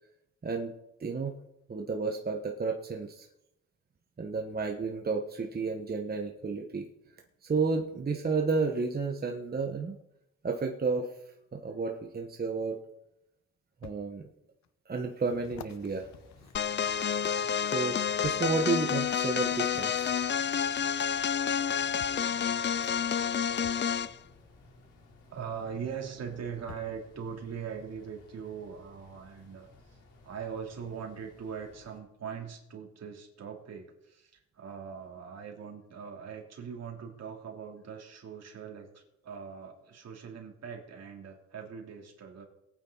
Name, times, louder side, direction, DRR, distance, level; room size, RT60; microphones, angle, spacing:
voice 1, 0.4-0.7 1.0-1.3 1.7-3.3 4.2-6.9 7.4-10.0 10.4-11.1 11.5-12.8 13.8-14.2 14.9-16.1 17.7-20.1, right 4 dB, 30° right, 2 dB, 1.5 m, -31 dB
sound 1, 13.8-14.0 14.6-14.7 15.4-17.3 18.2-18.6 19.7-19.9 21.2-21.3 22.0-22.3 23.6-23.9 25.5-25.6 26.7-27.0 27.8-27.9, left 11 dB, 65° left, 1.0 m, -50 dB
sound 2, 15.2-32.0, left 2 dB, 85° left, 4.0 m, -57 dB
sound 3, 16.5-24.2, left 8 dB, 35° left, 0.6 m, -29 dB
voice 2, 25.3-30.0 30.2-42.4, right 7 dB, 60° right, 1 dB, 3.4 m, -41 dB
20.5 x 9.2 x 4.1 m, 0.85 s
cardioid pair, 90°, 30 cm